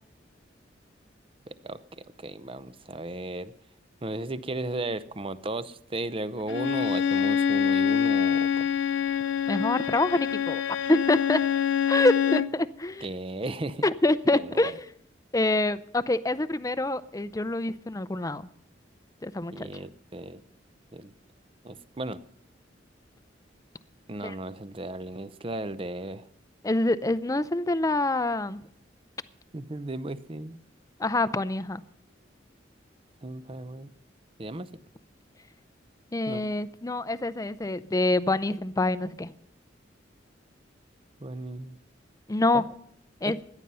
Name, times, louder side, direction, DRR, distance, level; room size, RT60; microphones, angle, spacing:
voice 1, 1.5-3.5 4.0-8.7 13.0-13.8 14.3-14.8 19.5-20.4 20.9-21.1 21.6-22.2 24.1-26.3 29.5-30.6 33.2-33.9 34.4-34.7 36.3-36.5 41.2-41.8 42.5-42.6 43.2-43.3, right 2 dB, 30° right, 0.7 m, -35 dB
Bowed string instrument, 6.5-12.6, left 8 dB, 90° left, 0.6 m, -25 dB
voice 2, 9.5-10.6 10.9-11.4 11.9-13.0 13.8-14.8 15.3-18.4 19.2-19.5 24.2-24.3 26.6-28.6 31.0-31.8 36.1-39.3 42.3-42.6 43.2-43.4, left 2 dB, 20° left, 0.5 m, -26 dB
17.0 x 11.5 x 5.5 m
head